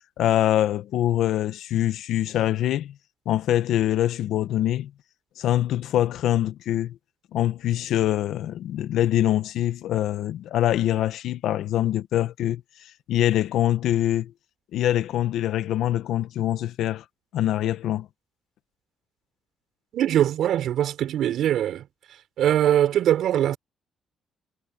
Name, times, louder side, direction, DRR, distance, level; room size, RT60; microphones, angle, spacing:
voice 1, 0.2-2.9 3.2-4.9 5.4-6.9 7.3-12.6 13.1-14.3 14.7-17.0 17.3-18.1, left 12 dB, 80° left, 1.2 m, -24 dB
voice 2, 19.9-21.9 22.4-23.6, right 11 dB, 75° right, 6.1 m, -22 dB
cardioid pair, 90°, 0 cm